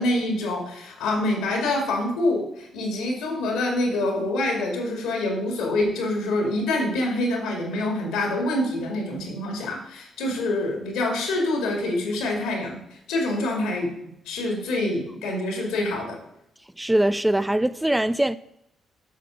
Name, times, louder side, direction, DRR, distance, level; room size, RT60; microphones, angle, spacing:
voice 1, 0.0-12.8 13.1-13.9 14.3-16.2, left 2 dB, 70° left, 2.1 m, -26 dB
voice 2, 16.8-18.4, right 1 dB, 10° right, 0.4 m, -22 dB
8.4 x 6.0 x 5.1 m
hypercardioid pair, 45°, 0 cm